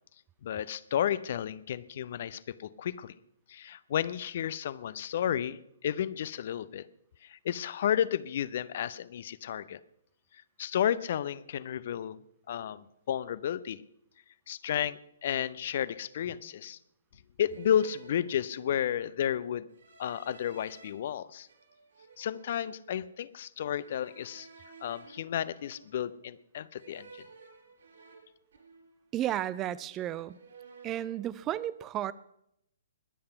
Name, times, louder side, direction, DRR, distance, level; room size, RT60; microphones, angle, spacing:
voice 1, 0.4-3.1 3.5-6.8 7.2-9.8 10.6-12.2 12.5-13.8 14.5-16.8 17.4-19.7 20.0-21.5 22.2-24.5 24.8-27.1, left 10 dB, 45° left, 17 dB, 0.7 m, -32 dB
sound 1, 15.1-15.3 16.2-16.7 17.5-18.9 19.7-20.9 21.5-23.0 23.8-26.2 26.8-29.0 29.3-30.0 30.3-31.2, right 4 dB, 60° right, 4.4 m, -55 dB
voice 2, 29.1-30.4 30.8-32.1, right 12 dB, 20° right, 19 dB, 0.4 m, -33 dB
21.5 x 8.6 x 5.7 m, 0.76 s
figure-of-eight pair, 125°, 0 cm